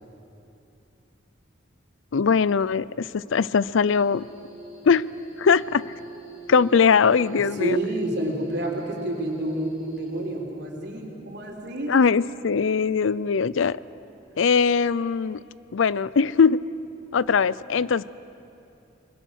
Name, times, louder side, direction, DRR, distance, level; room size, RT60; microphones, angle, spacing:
voice 1, 2.1-4.2 4.9-5.0 5.4-5.8 6.5-7.8 11.9-13.8 14.4-15.4 15.7-16.6 17.1-18.0, left 5 dB, 80° left, 19 dB, 0.5 m, -21 dB
sound 1, 3.9-10.4, left 1 dB, 45° left, 7.9 m, -42 dB
voice 2, 7.6-11.9, right 1 dB, 60° right, 0 dB, 3.9 m, -29 dB
30.0 x 21.0 x 6.4 m, 2.8 s
head